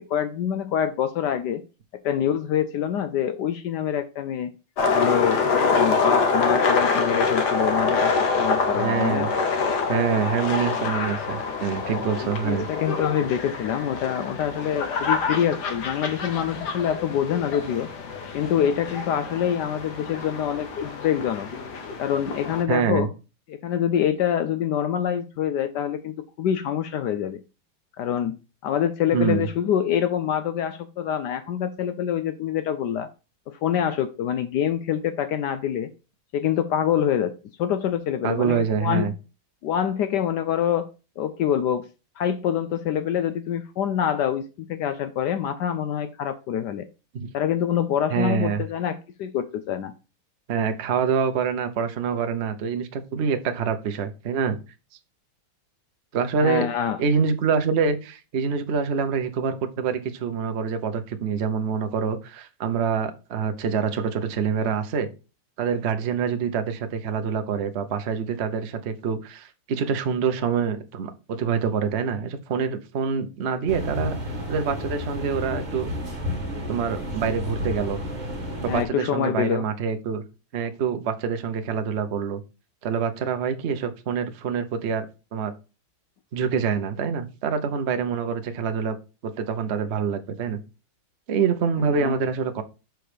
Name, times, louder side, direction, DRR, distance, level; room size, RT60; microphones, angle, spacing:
voice 1, 0.0-1.6 2.0-4.5 4.9-5.4 5.7-9.3 12.2-17.9 18.3-21.5 22.0-23.1 23.5-27.4 28.0-28.4 28.6-33.1 33.5-35.9 36.3-39.1 39.6-40.9 41.2-41.8 42.2-46.9 47.3-49.9 56.4-57.0 78.7-79.7 91.9-92.2, left 9 dB, 75° left, 1.0 m, -25 dB
sound 1, 4.8-22.6, left 4 dB, 55° left, 1.6 m, -26 dB
voice 2, 8.7-9.3 9.9-12.7 22.7-23.1 29.1-29.5 38.2-39.1 47.1-47.3 48.1-48.6 50.5-54.6 56.1-56.7 57.0-65.1 65.6-75.9 76.7-78.0 78.6-80.2 80.5-82.4 82.8-85.1 85.3-85.5 86.3-89.0 89.2-90.6 91.3-92.6, right 6 dB, 70° right, 0.6 m, -26 dB
sound 2, 73.7-78.8, left 1 dB, 25° right, 1.3 m, -31 dB
6.3 x 4.6 x 5.0 m
omnidirectional pair, 2.3 m